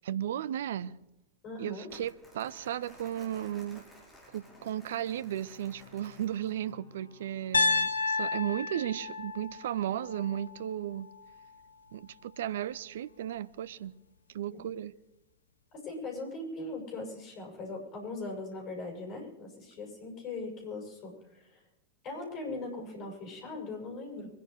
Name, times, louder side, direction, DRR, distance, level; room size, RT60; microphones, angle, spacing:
voice 1, 0.0-0.9 1.6-3.9 4.3-11.1 11.9-13.9 14.3-14.9, right 11 dB, 60° right, 0.6 m, -35 dB
voice 2, 1.4-1.9 14.5-14.7 15.7-21.6 22.0-24.3, left 3 dB, 30° left, 7.2 m, -40 dB
Crumpling crinkling, 1.9-6.7, left 1 dB, 5° left, 5.7 m, -56 dB
sound 1, 4.3-8.8, left 3 dB, 55° left, 3.8 m, -58 dB
Piano, 7.5-11.6, left 3 dB, 75° left, 0.8 m, -32 dB
24.5 x 10.5 x 4.9 m
figure-of-eight pair, 90°, 0 cm